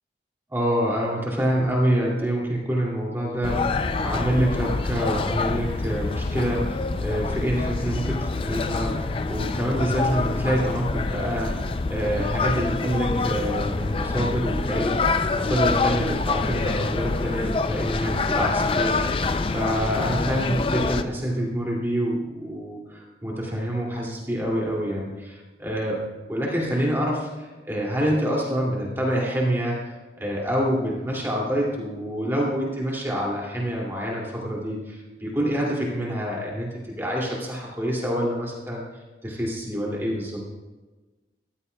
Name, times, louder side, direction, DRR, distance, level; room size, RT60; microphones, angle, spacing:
voice 1, 0.5-19.0 19.5-26.0 26.3-38.8 39.2-40.4, equal, 15° right, -3 dB, 2.4 m, -27 dB
sound 1, 3.4-21.0, left 3 dB, 30° left, 0.4 m, -26 dB
14.5 x 13.0 x 2.3 m, 1.2 s
head